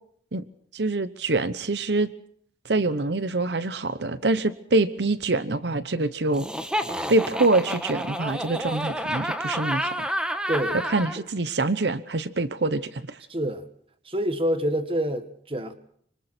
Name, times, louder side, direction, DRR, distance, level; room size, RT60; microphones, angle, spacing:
voice 1, 0.7-2.1 2.6-6.5 7.1-9.9 10.9-13.2, right 2 dB, 75° right, 1.0 m, -25 dB
Laughter, 6.3-11.2, equal, 5° right, 1.4 m, -29 dB
voice 2, 10.5-10.8 11.2-11.3 13.3-13.6 14.0-15.7, equal, 30° right, 1.7 m, -27 dB
25.5 x 25.5 x 4.4 m
head